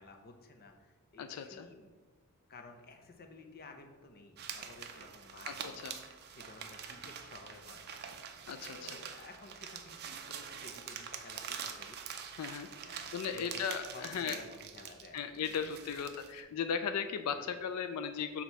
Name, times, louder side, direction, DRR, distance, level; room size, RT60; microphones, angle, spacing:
voice 1, 0.0-1.9 2.5-12.0 12.6-15.6 16.1-16.2 17.3-17.4, left 3 dB, 45° left, 5 dB, 0.6 m, -54 dB
voice 2, 1.2-1.7 5.5-6.0 8.5-9.0 12.4-12.7 13.1-14.4 15.1-18.4, left 7 dB, 90° left, 9 dB, 0.4 m, -37 dB
sound 1, 4.4-16.4, right 7 dB, 45° right, 0.5 m, -45 dB
6.1 x 3.0 x 5.4 m, 1.3 s
head